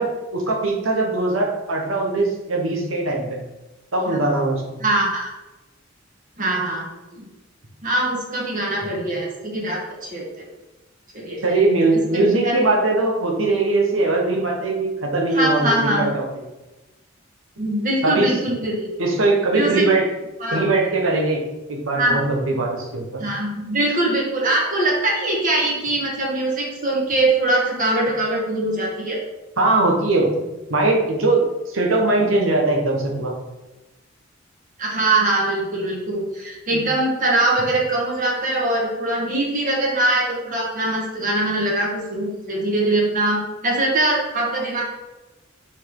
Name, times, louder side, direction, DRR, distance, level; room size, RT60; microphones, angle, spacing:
voice 1, 0.0-3.4 3.9-4.8 11.4-16.4 18.0-18.4 19.0-20.1 20.5-21.4 21.7-23.2 29.6-30.3 30.7-33.3 36.7-36.8, right 2 dB, 85° right, 0 dB, 1.4 m, -20 dB
voice 2, 4.8-5.3 6.4-6.8 7.1-7.3 7.8-10.4 11.1-11.5 11.9-12.6 15.3-16.1 17.6-18.9 19.5-19.8 20.4-20.7 21.9-22.2 23.2-29.2 34.8-44.8, right 2 dB, 45° right, -3 dB, 1.9 m, -22 dB
6.0 x 4.5 x 4.9 m, 1.1 s
head